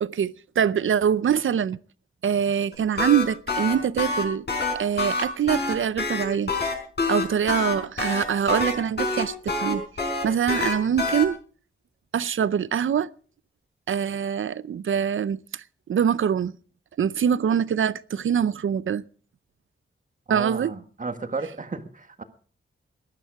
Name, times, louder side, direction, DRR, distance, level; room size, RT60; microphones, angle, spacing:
voice 1, 0.0-1.8 2.2-4.4 4.7-6.5 7.1-9.8 10.2-11.4 12.1-13.1 13.9-15.6 15.9-16.5 17.0-19.0 20.3-20.7, right 8 dB, 70° right, 0.6 m, -24 dB
sound 1, 2.7-11.2, left 3 dB, 55° left, 5.2 m, -26 dB
voice 2, 20.3-22.2, right 4 dB, 40° right, 1.6 m, -33 dB
19.5 x 12.5 x 4.7 m
wide cardioid pair, 140°, 21 cm